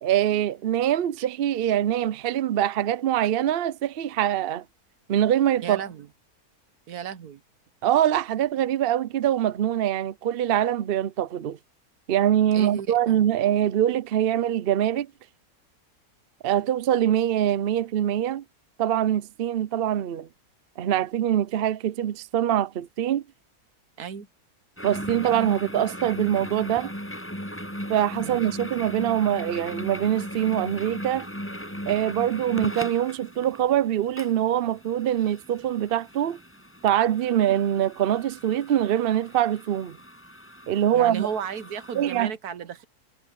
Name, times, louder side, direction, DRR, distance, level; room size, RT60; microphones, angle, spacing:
voice 1, 0.0-4.6 5.1-5.8 7.8-11.6 12.1-15.1 16.4-18.4 18.8-20.3 20.8-23.2 24.8-26.9 27.9-31.3 31.9-36.4 36.8-40.0 40.7-41.3 41.9-42.3, right 11 dB, 55° right, 0.6 m, -24 dB
voice 2, 5.6-6.1 6.9-7.4 12.5-13.3 24.0-24.3 28.2-28.4 40.9-42.8, right 7 dB, 80° right, 1.6 m, -34 dB
sound 1, 24.8-42.2, equal, 10° left, 6.2 m, -38 dB
omnidirectional pair, 1.6 m